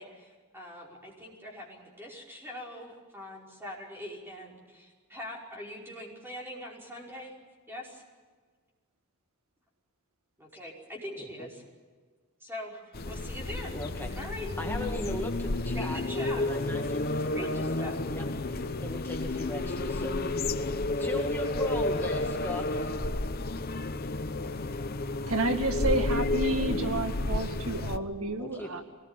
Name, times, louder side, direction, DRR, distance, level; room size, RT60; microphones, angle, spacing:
voice 1, 0.0-7.3 7.7-8.0 10.4-11.6 12.4-13.8 14.2-14.5 15.7-16.4 17.3-18.0, left 1 dB, 10° right, -3 dB, 5.3 m, -42 dB
sound 1, 12.9-28.0, left 2 dB, 45° left, 0.9 m, -31 dB
voice 2, 13.7-14.1 14.6-16.0 16.3-17.5 17.8-20.5 21.0-22.9 28.4-28.7, left 2 dB, 10° left, 0 dB, 1.9 m, -38 dB
voice 3, 25.3-28.8, right 2 dB, 75° right, 5 dB, 2.0 m, -30 dB
23.0 x 19.5 x 9.1 m, 1.5 s
head